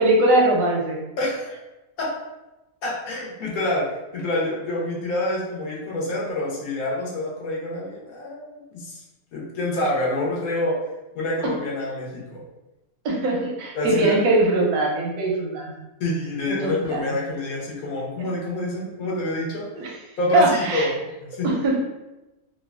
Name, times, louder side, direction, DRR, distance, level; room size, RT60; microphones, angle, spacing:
voice 1, 0.0-1.0 13.0-15.7 16.5-17.0 19.7-19.9 20.3-20.9 21.4-21.8, right 2 dB, 90° right, -1 dB, 1.2 m, -21 dB
voice 2, 1.2-1.6 2.0-2.1 2.8-3.9 4.1-9.0 9.3-10.8 11.1-12.4 13.7-14.2 16.0-19.7 20.2-20.9 21.2-21.5, left 1 dB, 80° left, -4 dB, 1.2 m, -27 dB
3.2 x 2.1 x 2.3 m, 1.0 s
omnidirectional pair, 1.5 m